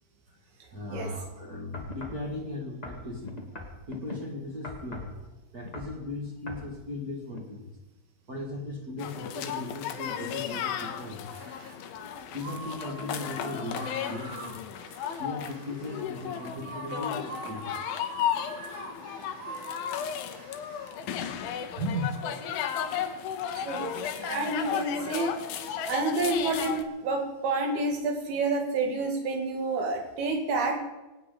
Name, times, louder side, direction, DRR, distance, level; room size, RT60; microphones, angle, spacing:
voice 1, 0.3-7.7 8.3-11.3 12.2-14.6 15.2-17.9 21.8-22.1, left 1 dB, 35° right, 1 dB, 1.5 m, -37 dB
sound 1, 1.7-2.2 2.8-4.2 4.6-5.2 5.6-6.0 6.5-6.7 7.3-7.4, left 2 dB, 20° left, 1.0 m, -41 dB
sound 2, 9.0-26.8, left 9 dB, 80° left, 2.8 m, -34 dB
sound 3, 11.2-11.8 12.4-21.0, right 4 dB, 55° right, 2.6 m, -44 dB
voice 2, 23.5-25.3 25.9-30.8, right 3 dB, 85° right, 2 dB, 4.2 m, -29 dB
24.5 x 9.1 x 5.1 m, 1.1 s
omnidirectional pair, 4.3 m